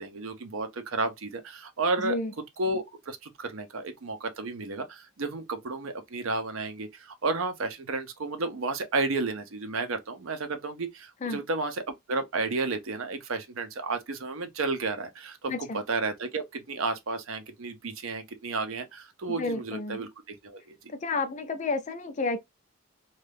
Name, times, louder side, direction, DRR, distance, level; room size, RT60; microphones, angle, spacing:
voice 1, 0.0-2.2 2.6-20.6, right 3 dB, 80° right, 0.6 m, -32 dB
voice 2, 2.0-2.3 11.2-11.4 15.5-15.8 19.3-20.0 20.9-22.4, left 3 dB, 35° left, 0.4 m, -31 dB
2.6 x 2.3 x 3.3 m
head